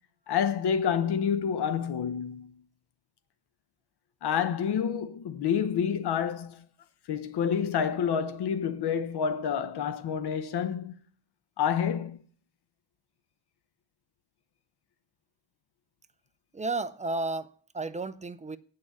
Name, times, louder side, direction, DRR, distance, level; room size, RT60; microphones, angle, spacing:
voice 1, 0.3-2.5 4.2-6.6 7.1-10.9 11.6-12.2, left 7 dB, 60° left, 0.8 m, -28 dB
voice 2, 16.5-18.6, right 3 dB, 15° right, 0.4 m, -33 dB
8.6 x 6.6 x 7.0 m
cardioid pair, 130°, 45 cm